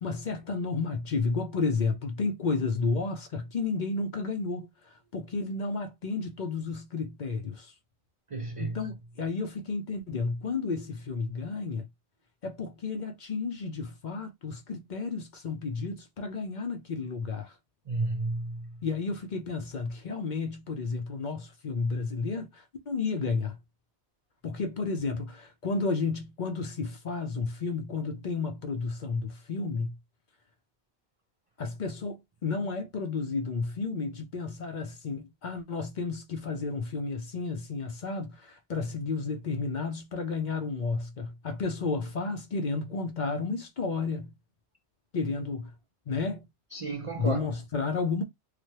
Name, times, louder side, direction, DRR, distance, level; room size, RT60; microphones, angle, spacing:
voice 1, 0.0-7.7 8.6-11.9 12.4-17.6 18.8-23.6 24.4-29.9 31.6-44.3 45.1-45.7 46.1-46.4 47.2-48.2, left 4 dB, 50° left, 0.6 m, -32 dB
voice 2, 8.3-8.8 17.9-18.8 46.7-47.5, right 3 dB, 60° right, 0.3 m, -32 dB
3.2 x 2.1 x 2.8 m
omnidirectional pair, 1.2 m